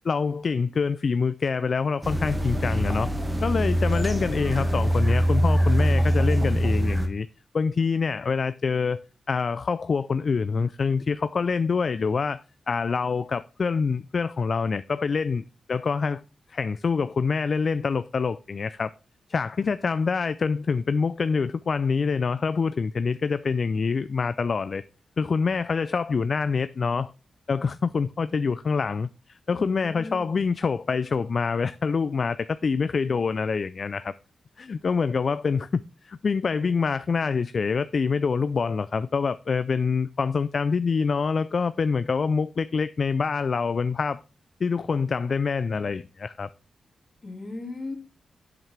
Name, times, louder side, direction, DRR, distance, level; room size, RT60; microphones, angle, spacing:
voice 1, 0.0-3.1 3.4-7.3 7.5-9.0 9.3-16.2 16.5-18.9 19.3-24.8 25.2-27.1 27.5-34.1 34.6-44.2 44.6-46.5, left 5 dB, 55° left, 0.3 m, -26 dB
sound 1, 2.0-7.1, equal, 15° right, 1.4 m, -23 dB
voice 2, 29.5-30.4 47.2-48.0, left 3 dB, 35° left, 2.2 m, -37 dB
7.6 x 7.3 x 3.3 m
cardioid pair, 80°, 0 cm